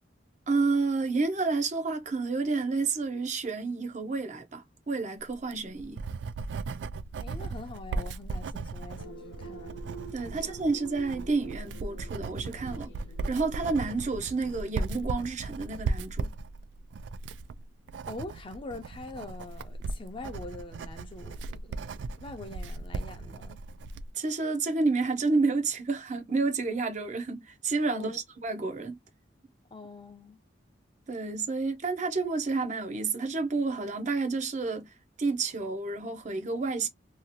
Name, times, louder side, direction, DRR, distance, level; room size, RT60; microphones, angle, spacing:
voice 1, 0.5-6.0 10.1-12.9 13.3-16.3 24.1-29.0 31.1-34.9 35.2-36.9, right 3 dB, 40° right, 0.6 m, -30 dB
Writing, 5.3-24.1, right 3 dB, 75° right, 0.3 m, -37 dB
voice 2, 7.2-9.8 10.3-10.5 10.8-10.9 18.1-23.6 27.9-28.2 29.7-30.4, left 2 dB, 30° left, 0.6 m, -44 dB
sound 1, 9.0-15.4, right 4 dB, 80° left, 0.7 m, -47 dB
2.8 x 2.4 x 2.7 m
head